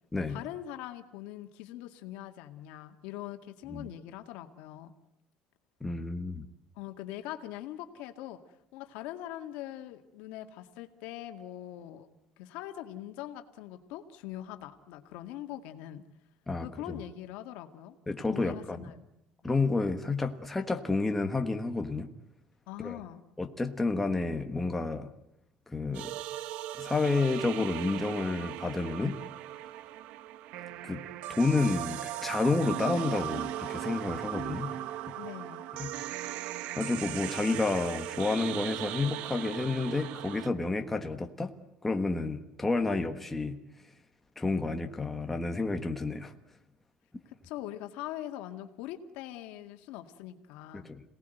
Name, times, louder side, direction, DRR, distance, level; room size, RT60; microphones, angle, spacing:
voice 1, 0.3-4.9 6.8-8.4 8.7-12.1 12.4-16.0 16.6-18.0 18.3-19.0 19.4-19.7 22.7-23.2 35.2-35.6 47.3-50.9, left 13 dB, 85° left, 7 dB, 2.1 m, -42 dB
voice 2, 5.8-6.4 16.5-17.0 18.1-18.9 19.4-22.1 22.8-23.0 23.4-25.1 25.7-26.1 26.8-29.2 30.8-31.0 31.4-34.7 35.8-35.9 36.8-41.5 41.8-43.6 44.4-46.3 50.7-51.0, left 3 dB, 10° left, 5 dB, 1.4 m, -30 dB
sound 1, 25.9-40.5, right 13 dB, 65° right, 0.9 m, -38 dB
27.5 x 18.5 x 9.2 m, 0.84 s
cardioid pair, 175°, 2 cm